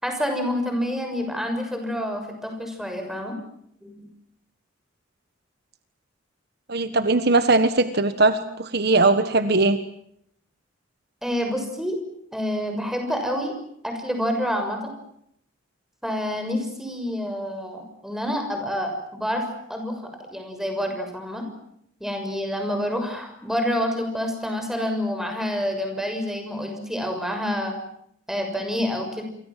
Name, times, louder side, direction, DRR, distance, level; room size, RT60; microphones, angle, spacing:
voice 1, 0.0-3.3 3.8-4.1 11.2-12.0 12.3-13.5 13.8-14.9 16.0-19.4 19.7-21.4 22.0-27.8 28.3-29.2, equal, ahead, 4 dB, 6.6 m, -28 dB
voice 2, 6.7-9.8, right 3 dB, 55° right, 10 dB, 1.5 m, -20 dB
28.5 x 24.0 x 7.6 m, 0.73 s
head